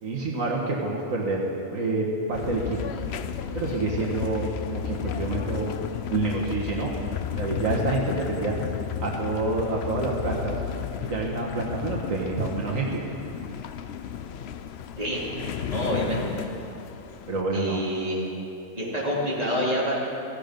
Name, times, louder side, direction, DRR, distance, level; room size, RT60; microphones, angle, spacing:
voice 1, 0.0-1.4 1.7-2.9 3.5-5.8 6.1-6.9 7.4-8.6 9.0-10.6 11.0-13.0 16.0-16.1 17.3-17.9, right 3 dB, 75° right, -2 dB, 1.9 m, -28 dB
sound 1, 2.3-17.4, left 9 dB, 60° left, 0.8 m, -33 dB
voice 2, 15.7-16.2 17.5-18.2 18.8-19.9, equal, 30° right, -6 dB, 3.4 m, -27 dB
17.5 x 15.0 x 5.3 m, 2.8 s
omnidirectional pair, 1.4 m